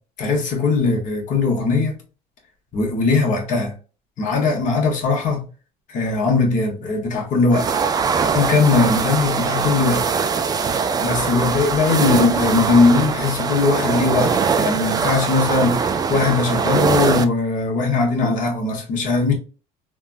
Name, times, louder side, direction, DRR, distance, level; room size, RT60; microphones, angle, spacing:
voice 1, 0.2-2.0 2.7-3.7 4.2-5.4 5.9-7.7 8.3-10.0 11.0-19.3, left 4 dB, 45° left, 1.3 m, -19 dB
sound 1, 7.5-17.2, right 6 dB, 20° right, 0.3 m, -21 dB
3.4 x 2.3 x 2.5 m
cardioid pair, 125°, 17 cm